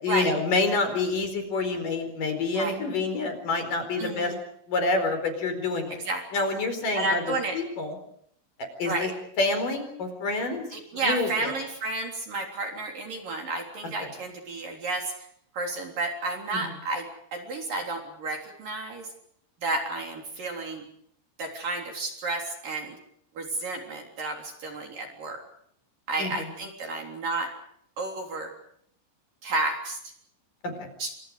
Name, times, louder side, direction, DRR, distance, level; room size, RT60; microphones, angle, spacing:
voice 1, 0.0-4.3 4.7-6.0 6.3-7.2 7.5-8.0 8.8-9.1 9.4-10.7 10.9-11.5 16.5-16.6 26.2-26.5 30.6-30.9, left 3 dB, 45° left, 7 dB, 5.8 m, -27 dB
voice 2, 4.0-4.4 5.9-6.2 6.9-7.6 8.8-9.1 10.7-15.3 15.5-19.1 19.6-20.9 21.4-23.0 23.3-25.4 26.1-27.5 28.0-28.5 29.4-30.1 31.0-31.1, right 2 dB, 45° right, 2 dB, 4.8 m, -31 dB
29.5 x 27.5 x 5.1 m, 0.68 s
omnidirectional pair, 5.6 m